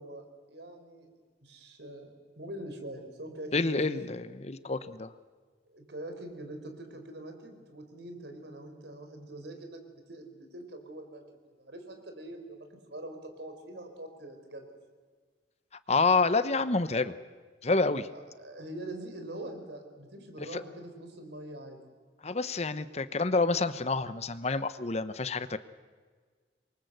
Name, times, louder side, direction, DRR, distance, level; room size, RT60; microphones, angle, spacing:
voice 1, 0.0-4.2 5.7-11.2 11.6-14.7 18.1-21.8, right 1 dB, 70° right, 6 dB, 4.7 m, -44 dB
voice 2, 3.5-5.1 15.9-17.1 17.6-18.1 20.4-20.6 22.2-25.6, left 3 dB, 35° left, 13 dB, 0.9 m, -28 dB
27.5 x 23.0 x 8.1 m, 1.5 s
head